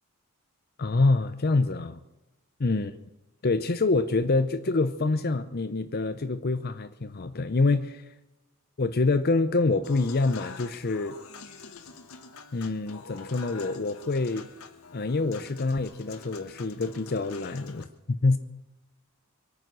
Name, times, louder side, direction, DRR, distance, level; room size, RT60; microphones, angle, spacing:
voice 1, 0.8-2.0 2.6-2.9 3.4-8.0 8.8-11.1 12.5-14.5 14.9-18.4, left 3 dB, 45° left, 10 dB, 0.6 m, -26 dB
Human voice / Acoustic guitar / Piano, 9.8-17.8, left 5 dB, 70° left, 1.6 m, -46 dB
25.0 x 9.2 x 6.2 m, 1.0 s
head